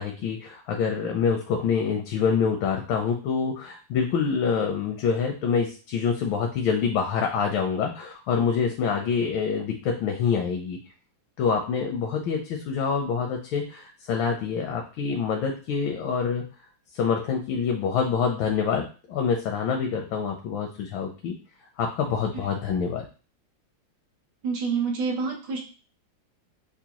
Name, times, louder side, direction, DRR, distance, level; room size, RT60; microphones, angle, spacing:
voice 1, 0.0-10.8 11.4-16.4 16.9-21.4 21.8-23.0, left 6 dB, 85° left, 2 dB, 1.4 m, -26 dB
voice 2, 24.4-25.6, right 5 dB, 70° right, -1 dB, 1.5 m, -27 dB
4.8 x 2.2 x 2.9 m, 0.35 s
omnidirectional pair, 2.1 m